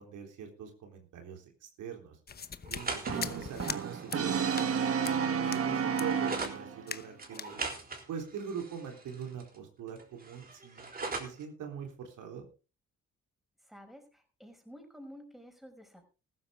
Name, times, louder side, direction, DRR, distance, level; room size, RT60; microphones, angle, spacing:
voice 1, 0.0-1.5 1.8-2.2 2.7-7.6 8.1-12.5, right 7 dB, 85° right, 3 dB, 3.7 m, -43 dB
sound 1, 2.3-3.8 4.1-4.2 4.6-4.7 5.0-5.2 5.5-5.6 6.0-6.1 6.4-6.6 6.9-7.1 7.3-7.5, left 6 dB, 30° left, 1.0 m, -40 dB
sound 2, 2.6-6.6 7.2-9.6 9.9-11.4, right 3 dB, 30° right, 3.6 m, -41 dB
Brass instrument, 3.1-6.9, right 7 dB, 50° right, 1.8 m, -31 dB
voice 2, 13.6-16.1, equal, ahead, 4 dB, 5.3 m, -51 dB
15.0 x 12.5 x 3.7 m, 0.34 s
cardioid pair, 90°, 30 cm